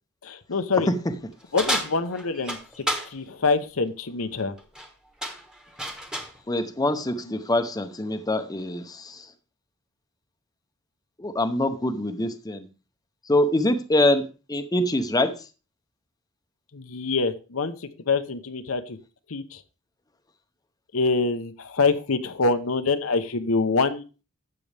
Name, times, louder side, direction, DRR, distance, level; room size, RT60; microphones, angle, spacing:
voice 1, 0.2-0.9 1.5-4.5 16.7-19.0 19.3-19.6 20.9-24.0, left 4 dB, 80° left, 9 dB, 0.9 m, -25 dB
sound 1, 1.6-3.1 4.6-4.9 5.2-6.4, equal, 5° right, 1.3 m, -30 dB
voice 2, 6.5-9.3 11.2-12.7 13.3-15.3, left 1 dB, 20° left, 7 dB, 0.8 m, -24 dB
12.0 x 7.7 x 3.4 m, 0.33 s
head